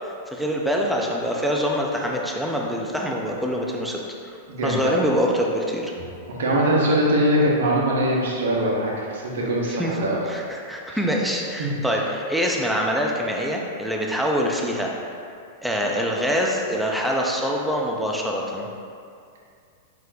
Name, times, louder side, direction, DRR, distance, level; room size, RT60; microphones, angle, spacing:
voice 1, 0.0-4.0 4.6-5.9 9.6-10.0 10.2-14.9 15.6-18.7, equal, ahead, -2 dB, 0.5 m, -25 dB
voice 2, 4.5-4.9 6.4-10.2 10.9-11.0 11.6-11.7, right 1 dB, 65° right, -4 dB, 0.9 m, -22 dB
5.0 x 2.1 x 4.0 m, 2.4 s
figure-of-eight pair, 100°, 0 cm